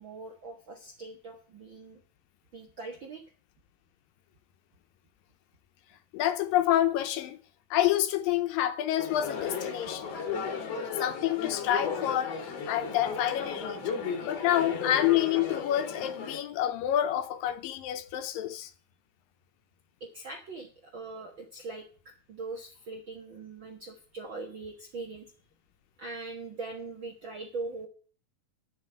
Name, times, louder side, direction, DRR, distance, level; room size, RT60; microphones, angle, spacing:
voice 1, 0.0-2.0 2.5-3.2 20.0-25.3 26.0-27.9, right 3 dB, 60° right, 1.3 m, -41 dB
voice 2, 6.1-7.4 7.7-10.1 11.0-13.8 14.3-18.7, left 12 dB, 75° left, 2.3 m, -28 dB
sound 1, 9.0-16.4, left 6 dB, 50° left, 2.5 m, -35 dB
11.5 x 6.2 x 8.5 m
omnidirectional pair, 4.4 m